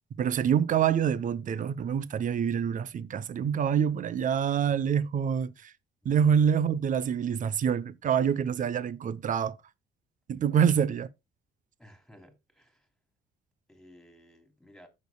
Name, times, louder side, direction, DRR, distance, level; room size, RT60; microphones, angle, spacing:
voice 1, 0.2-5.7 6.0-9.5 10.3-11.1, right 8 dB, 45° right, 0.7 m, -26 dB
voice 2, 11.8-12.9 13.7-14.9, equal, 5° left, 3.1 m, -55 dB
15.0 x 6.6 x 2.2 m
cardioid pair, 95°, 18 cm